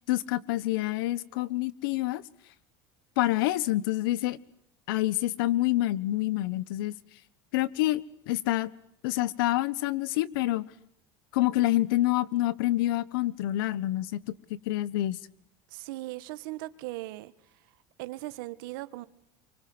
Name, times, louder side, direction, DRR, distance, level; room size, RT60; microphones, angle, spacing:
voice 1, 0.0-2.2 3.2-4.4 4.9-6.9 7.5-8.7 9.0-10.6 11.3-14.2 14.5-15.2, left 16 dB, 90° left, 1.3 m, -27 dB
voice 2, 15.7-17.3 18.0-19.1, right 18 dB, 80° right, 1.7 m, -38 dB
29.0 x 25.0 x 8.0 m
cardioid pair, 175°, 11 cm